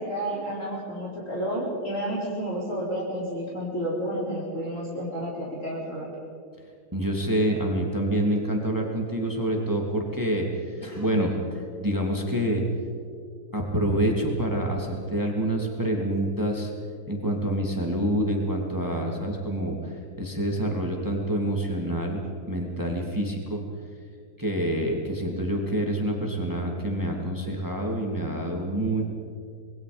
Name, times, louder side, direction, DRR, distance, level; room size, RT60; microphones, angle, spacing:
voice 1, 0.0-6.1, equal, 35° left, -6 dB, 4.8 m, -31 dB
voice 2, 6.9-12.6 13.5-16.7 17.1-19.9 20.2-23.6 24.4-29.0, right 1 dB, 10° right, 0 dB, 2.6 m, -27 dB
26.0 x 21.5 x 5.3 m, 2.2 s
omnidirectional pair, 2.4 m